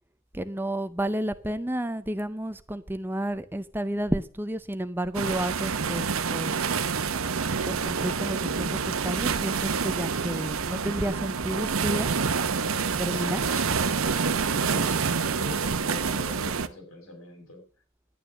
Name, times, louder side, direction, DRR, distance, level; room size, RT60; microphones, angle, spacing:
voice 1, 0.3-6.6 7.6-12.1 13.0-13.5, right 1 dB, 10° right, 12 dB, 0.5 m, -31 dB
sound 1, 5.1-16.7, right 5 dB, 80° right, 0.8 m, -27 dB
voice 2, 13.1-14.1 14.4-17.6, left 1 dB, 85° left, 4 dB, 5.8 m, -42 dB
11.0 x 9.5 x 6.3 m, 0.38 s
head